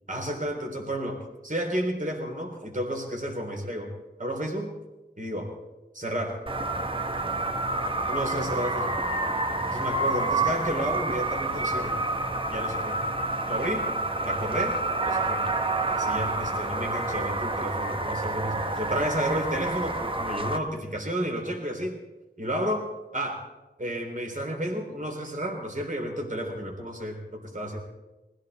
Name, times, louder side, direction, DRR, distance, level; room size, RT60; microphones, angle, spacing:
voice 1, 0.1-3.9 4.2-4.7 5.2-5.5 5.9-6.3 8.1-9.0 9.6-12.0 12.5-13.0 13.5-13.8 14.2-14.8 15.0-15.4 15.9-22.0 22.4-22.8 23.1-23.4 23.8-27.8, equal, 45° right, 1 dB, 3.4 m, -31 dB
sound 1, 6.5-20.6, right 2 dB, 30° right, 1.0 m, -28 dB
21.0 x 15.5 x 4.1 m, 1.1 s
wide cardioid pair, 50°, 18 cm